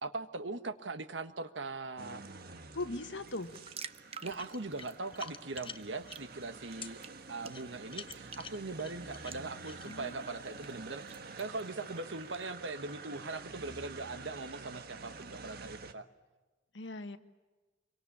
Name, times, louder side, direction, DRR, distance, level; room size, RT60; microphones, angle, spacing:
voice 1, 0.0-2.2 4.2-7.0 7.3-16.1, right 3 dB, 90° right, 10 dB, 1.4 m, -40 dB
Land Rover Water, 2.0-15.9, right 4 dB, 55° right, 1.5 m, -49 dB
voice 2, 2.7-3.5 9.8-10.4 16.7-17.2, left 2 dB, 85° left, 9 dB, 1.5 m, -40 dB
sound 1, 3.3-12.4, right 6 dB, 35° right, 1.0 m, -52 dB
Screwgate Carabiner, 4.3-6.2 6.8-6.9 7.5-9.9, left 6 dB, 30° left, 1.1 m, -48 dB
26.5 x 24.0 x 8.6 m, 1.2 s
head